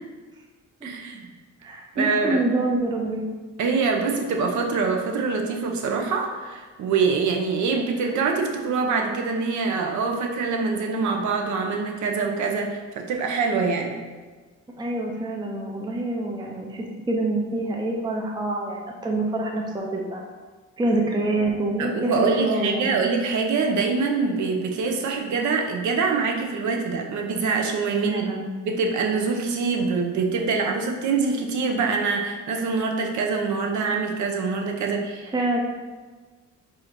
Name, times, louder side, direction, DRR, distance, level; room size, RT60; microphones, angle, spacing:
voice 1, 0.8-1.3 2.0-2.4 3.6-14.0 21.8-28.2 28.6-35.3, right 4 dB, 70° right, 3 dB, 0.7 m, -24 dB
voice 2, 1.6-3.2 14.8-20.2 20.8-23.0 28.0-28.5 35.3-35.6, right 2 dB, 15° right, 0 dB, 0.5 m, -26 dB
4.8 x 2.5 x 4.3 m, 1.4 s
cardioid pair, 145°, 31 cm